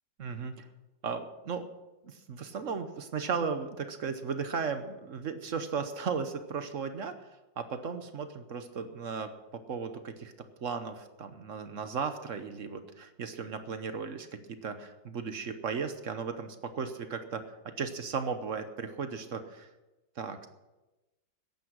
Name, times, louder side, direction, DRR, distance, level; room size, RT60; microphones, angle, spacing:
voice 1, 0.2-0.7 1.0-1.7 2.0-7.1 7.6-10.3 10.6-19.7 20.2-20.5, right 5 dB, 50° right, 9 dB, 1.1 m, -36 dB
14.5 x 11.0 x 6.2 m, 1.1 s
omnidirectional pair, 2.0 m